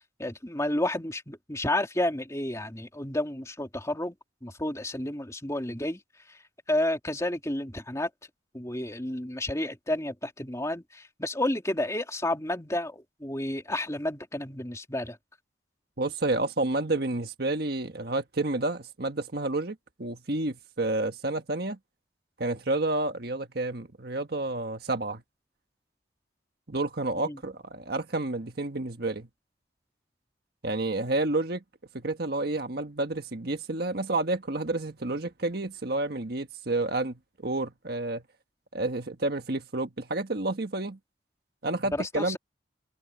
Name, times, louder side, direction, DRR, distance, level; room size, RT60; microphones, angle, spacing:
voice 1, 0.2-4.1 4.4-6.0 6.3-6.4 6.7-8.1 8.5-15.2 27.2-27.4 41.9-42.4, left 1 dB, 15° left, 3.1 m, -31 dB
voice 2, 16.0-21.8 22.4-25.2 26.7-29.3 30.6-31.6 31.9-38.2 38.7-41.0 41.6-42.4, right 2 dB, 55° right, 1.5 m, -30 dB
open air
head